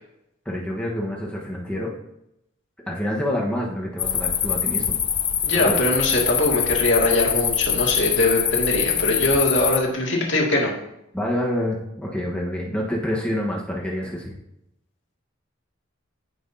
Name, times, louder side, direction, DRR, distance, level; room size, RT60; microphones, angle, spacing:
voice 1, 0.4-1.9 2.9-5.0 5.5-5.8 11.1-14.3, left 1 dB, 5° left, -3 dB, 1.3 m, -27 dB
sound 1, 4.0-9.8, left 8 dB, 25° left, 0.5 m, -24 dB
voice 2, 5.4-10.7, left 1 dB, 65° left, -2 dB, 2.2 m, -21 dB
15.5 x 6.0 x 2.8 m, 0.83 s
head